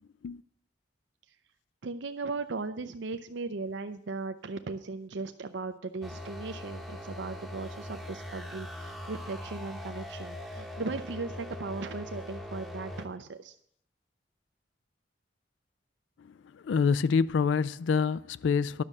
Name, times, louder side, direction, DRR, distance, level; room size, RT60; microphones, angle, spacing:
voice 1, 1.8-13.6, right 3 dB, 75° right, 0.5 m, -37 dB
sound 1, 6.0-13.1, left 1 dB, ahead, 0.8 m, -41 dB
voice 2, 16.5-18.8, left 5 dB, 85° left, 0.4 m, -26 dB
11.0 x 6.5 x 7.3 m
head